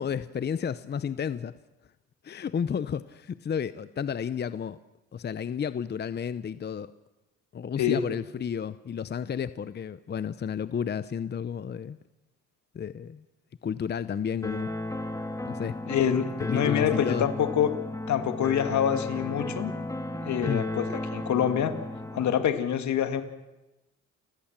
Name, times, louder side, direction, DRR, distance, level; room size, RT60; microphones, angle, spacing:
voice 1, 0.0-1.5 2.2-4.8 5.1-6.9 7.5-12.0 12.7-13.2 13.6-14.7 15.4-15.8 16.4-17.3 20.5-20.6, left 7 dB, 35° left, 0.7 m, -32 dB
sound 1, 14.4-22.4, left 1 dB, 10° left, 1.7 m, -34 dB
voice 2, 15.9-16.2 16.5-17.7 18.1-19.7 20.2-21.8 22.1-23.2, left 9 dB, 70° left, 2.0 m, -26 dB
29.0 x 15.5 x 7.3 m
cardioid pair, 90°, 30 cm